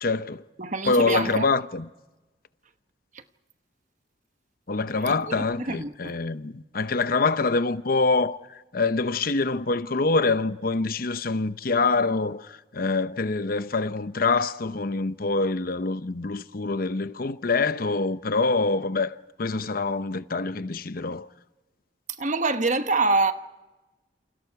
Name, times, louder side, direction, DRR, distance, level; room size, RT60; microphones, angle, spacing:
voice 1, 0.0-0.4 0.9-1.9 4.7-21.3, left 3 dB, 55° left, 0.8 m, -25 dB
voice 2, 0.6-1.4 3.1-3.2 5.0-6.1 22.2-23.3, right 3 dB, 45° right, 1.2 m, -26 dB
29.0 x 28.5 x 4.8 m
head